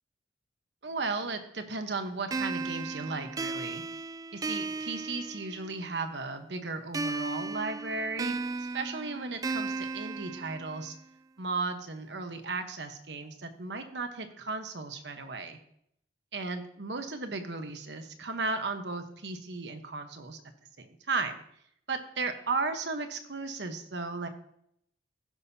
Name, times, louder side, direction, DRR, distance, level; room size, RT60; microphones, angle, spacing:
voice 1, 0.8-3.8 4.3-8.3 8.7-10.9 11.4-15.6 16.3-20.4 20.8-21.4 21.9-24.3, right 3 dB, 70° right, 7 dB, 1.1 m, -35 dB
sound 1, 2.3-5.9 6.9-11.0, right 3 dB, 20° right, 0.3 m, -35 dB
15.5 x 6.4 x 2.8 m, 0.71 s
head